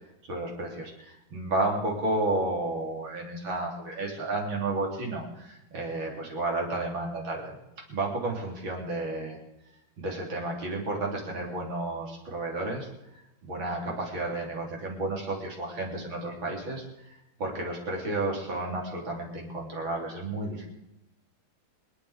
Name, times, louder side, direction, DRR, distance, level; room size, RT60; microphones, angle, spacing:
voice 1, 0.3-7.6 7.9-9.4 10.0-12.9 13.4-20.7, right 2 dB, 80° right, -1 dB, 4.1 m, -32 dB
26.0 x 9.4 x 5.0 m, 0.90 s
omnidirectional pair, 2.1 m